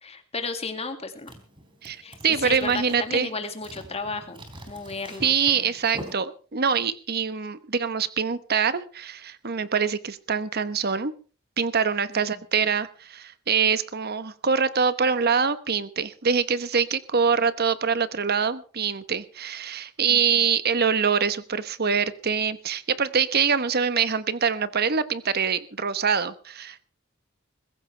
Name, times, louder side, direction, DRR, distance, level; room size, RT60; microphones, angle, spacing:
voice 1, 0.0-1.3 2.0-5.7 12.1-12.2 20.1-20.4, left 3 dB, 30° left, 7 dB, 2.3 m, -34 dB
sound 1, 1.2-6.1, right 1 dB, 25° right, 3.9 m, -44 dB
voice 2, 1.8-3.3 5.2-11.1 11.6-26.8, right 6 dB, 50° right, 14 dB, 1.1 m, -24 dB
21.5 x 15.5 x 3.4 m, 0.39 s
head